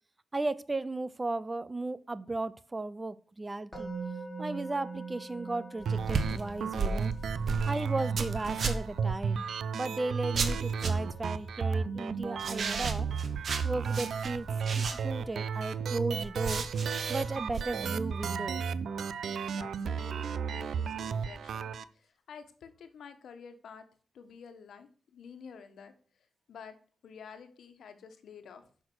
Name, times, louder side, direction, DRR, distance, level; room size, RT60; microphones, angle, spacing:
voice 1, 0.3-3.9 4.4-7.1 7.7-9.4 9.7-13.1 13.6-14.5 14.8-16.7 17.1-18.6, right 2 dB, 20° right, 0.5 m, -35 dB
Musical instrument, 3.7-14.8, right 4 dB, 5° left, 4.0 m, -46 dB
sound 1, 5.8-9.0 10.3-11.2 12.4-15.3 16.4-17.6, right 4 dB, 50° right, 1.3 m, -35 dB
sound 2, 5.9-21.8, right 6 dB, 70° right, 0.6 m, -33 dB
voice 2, 19.5-23.8 24.1-26.7 27.0-28.7, left 6 dB, 75° left, 1.5 m, -50 dB
10.5 x 6.5 x 6.2 m
wide cardioid pair, 150°, 0 cm